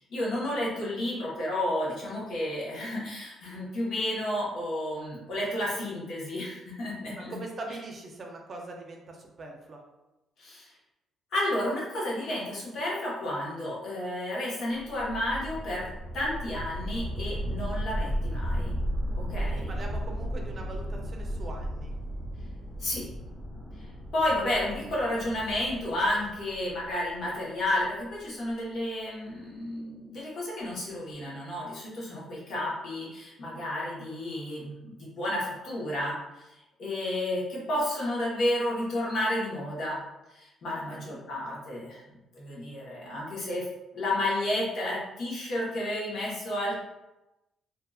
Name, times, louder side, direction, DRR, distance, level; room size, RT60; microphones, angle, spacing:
voice 1, 0.0-7.4 10.4-10.7 11.3-15.9 16.1-18.8 19.3-19.7 22.8-23.1 24.1-36.5 36.8-40.0 40.3-43.7 43.9-46.8, left 1 dB, 70° left, -6 dB, 1.1 m, -31 dB
voice 2, 7.2-9.8 19.5-21.9 40.8-41.2, right 2 dB, 45° right, 1 dB, 0.5 m, -42 dB
sound 1, 14.7-27.8, equal, 10° right, 1.2 m, -35 dB
2.7 x 2.5 x 2.3 m, 0.98 s
cardioid pair, 90°, 0 cm